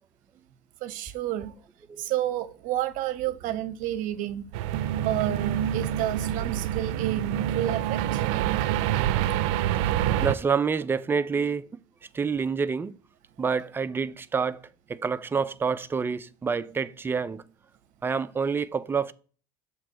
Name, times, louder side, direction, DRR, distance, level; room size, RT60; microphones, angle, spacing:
voice 1, 0.8-1.5 2.0-4.5 5.0-8.2, right 13 dB, 60° right, 0.7 m, -30 dB
sound 1, 4.5-10.4, right 11 dB, 90° right, 0.4 m, -26 dB
voice 2, 10.2-11.7 12.1-12.9 13.4-14.6 14.9-17.4 18.0-19.1, right 5 dB, 15° right, 0.3 m, -27 dB
7.4 x 3.0 x 6.1 m
cardioid pair, 130°, 15 cm